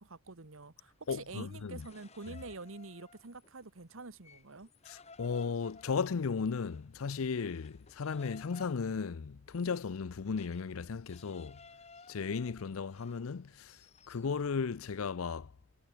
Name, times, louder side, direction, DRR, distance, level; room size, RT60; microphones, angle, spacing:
voice 1, 0.0-4.7, right 3 dB, 70° right, 1.3 m, -47 dB
sound 1, 0.9-3.7 4.0-14.3, left 4 dB, 30° left, 1.7 m, -58 dB
voice 2, 1.1-1.9 2.3-2.4 4.9-11.6 12.1-13.8 14.1-15.5, left 5 dB, 80° left, 0.5 m, -35 dB
head